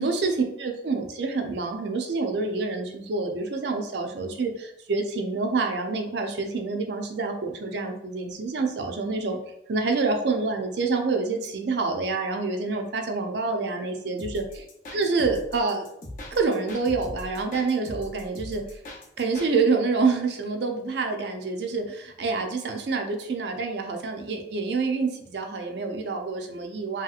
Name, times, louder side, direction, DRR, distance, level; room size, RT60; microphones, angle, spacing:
voice 1, 0.0-14.7 14.9-15.9 16.3-18.8 19.2-27.0, right 4 dB, 65° right, 4 dB, 0.4 m, -27 dB
sound 1, 14.2-19.5, left 1 dB, 45° left, 0.6 m, -40 dB
3.0 x 2.8 x 2.4 m, 0.76 s
head